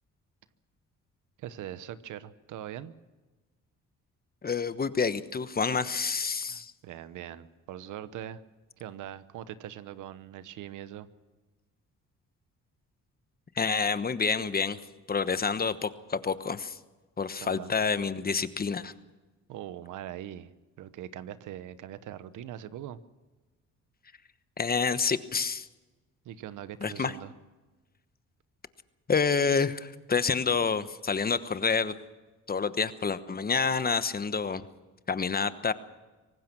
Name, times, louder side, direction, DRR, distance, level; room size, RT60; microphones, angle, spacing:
voice 1, 1.4-2.9 6.5-8.4 8.8-11.1 17.4-17.7 19.5-20.5 20.8-23.0 26.2-27.3, right 11 dB, 85° right, 14 dB, 1.1 m, -42 dB
voice 2, 4.4-6.7 13.6-14.8 15.1-16.8 17.2-18.9 24.6-25.7 26.8-27.1 29.1-31.9 32.5-34.6 35.1-35.7, left 5 dB, 30° left, 13 dB, 1.1 m, -28 dB
24.5 x 18.5 x 6.1 m, 1.2 s
cardioid pair, 90°, 30 cm